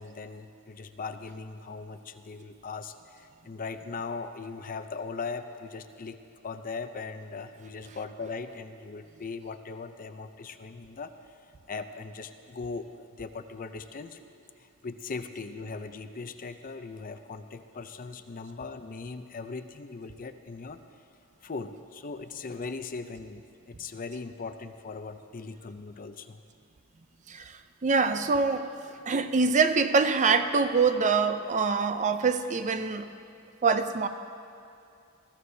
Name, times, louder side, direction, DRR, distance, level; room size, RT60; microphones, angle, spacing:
voice 1, 0.0-6.2 6.4-11.4 11.7-14.2 14.6-20.8 21.4-26.4 31.4-31.5, left 4 dB, 40° left, 9 dB, 0.5 m, -39 dB
voice 2, 27.3-28.7 29.1-33.1 33.6-34.1, right 4 dB, 35° right, 9 dB, 0.5 m, -25 dB
21.0 x 14.5 x 2.7 m, 2.6 s
head